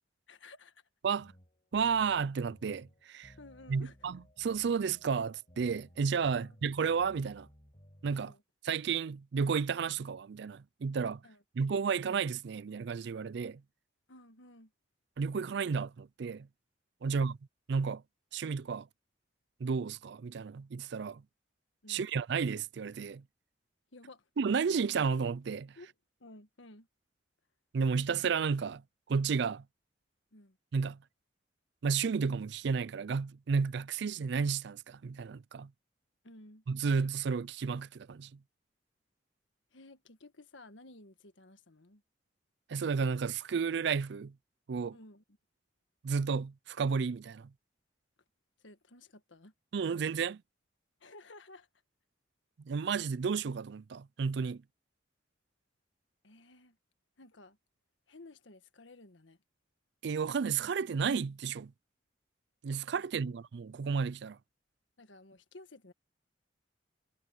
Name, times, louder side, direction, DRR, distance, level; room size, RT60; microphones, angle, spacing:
voice 1, 0.3-0.8 3.4-4.0 6.3-6.5 8.2-8.4 11.2-11.4 14.1-14.7 17.0-17.3 21.8-22.1 23.9-24.3 25.8-25.9 26.2-26.9 30.3-30.6 36.2-36.6 39.7-42.0 44.9-45.2 48.6-49.5 51.0-51.7 56.2-56.8 57.2-57.6 58.1-59.4 63.2-63.3 65.0-65.9, left 2 dB, 85° left, 1.6 m, -54 dB
sound 1, 1.2-8.3, equal, 30° left, 6.5 m, -59 dB
voice 2, 1.7-3.3 3.7-7.5 8.0-8.3 8.6-11.2 11.6-13.6 15.2-16.5 17.0-17.4 17.7-18.0 18.3-18.9 19.6-21.2 21.9-23.2 24.4-25.7 27.7-28.8 29.1-29.6 30.7-31.0 31.8-35.7 36.7-38.3 42.7-44.3 44.7-45.0 46.0-47.5 49.7-50.4 52.6-54.6 60.0-61.7 62.6-64.4, right 5 dB, 65° right, 0.4 m, -32 dB
head